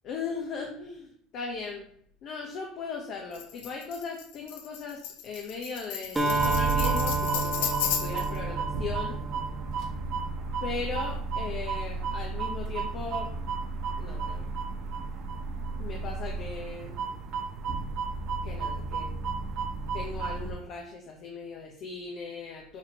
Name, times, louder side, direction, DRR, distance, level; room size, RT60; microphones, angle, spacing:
voice 1, 0.0-1.9 2.2-9.2 10.6-13.3 14.0-14.4 15.8-17.1 18.4-19.1 19.4-19.5 19.9-22.8, left 4 dB, 55° left, 1 dB, 1.0 m, -38 dB
Tambourine, 3.3-8.4, left 9 dB, 85° left, 0.9 m, -34 dB
Acoustic guitar, 6.2-10.0, right 3 dB, 15° right, 1.2 m, -30 dB
sound 1, 6.3-20.5, right 4 dB, 60° right, 1.2 m, -33 dB
7.3 x 4.3 x 3.0 m, 0.62 s
supercardioid pair, 115°, 0 cm